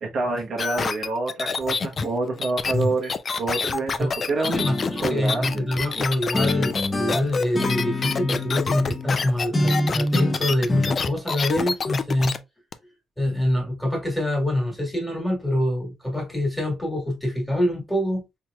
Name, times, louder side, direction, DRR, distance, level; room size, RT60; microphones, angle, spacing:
voice 1, 0.0-4.7 5.0-5.7 6.0-6.1, right 3 dB, 60° right, 0.9 m, -27 dB
sound 1, 0.6-12.4 12.7-12.8, left 5 dB, 40° left, 0.4 m, -27 dB
voice 2, 4.0-12.4 13.2-18.2, left 1 dB, 5° left, 1.6 m, -25 dB
sound 2, 4.5-6.0 6.3-9.2 9.5-10.9, left 1 dB, 25° left, 1.0 m, -27 dB
4.3 x 3.0 x 2.2 m
cardioid pair, 90°, 0 cm